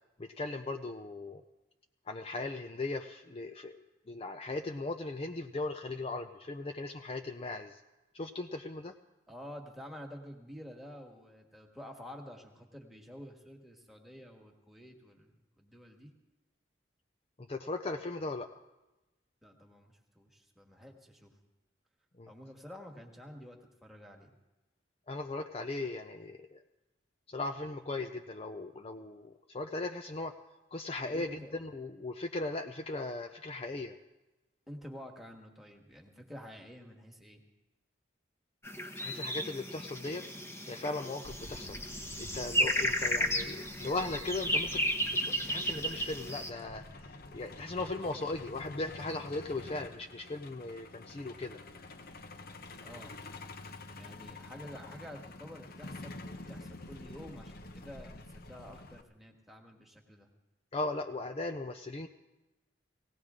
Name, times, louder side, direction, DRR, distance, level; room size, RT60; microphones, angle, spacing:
voice 1, 0.2-1.4 2.1-7.8 8.1-8.9 17.4-18.6 22.2-22.3 25.1-26.6 27.3-30.3 30.7-34.0 39.0-40.2 40.7-41.8 42.2-44.8 45.1-51.6 60.7-62.1, left 2 dB, 30° left, 6 dB, 0.5 m, -38 dB
voice 2, 9.3-16.1 19.4-21.3 22.3-24.3 31.1-31.6 34.7-37.4 52.8-53.2 53.9-60.3, equal, ahead, 1 dB, 1.6 m, -49 dB
sound 1, 38.6-46.5, equal, 15° left, 1.1 m, -34 dB
Truck, 41.2-59.0, left 2 dB, 55° left, 0.9 m, -48 dB
19.0 x 17.0 x 3.7 m, 1.1 s
head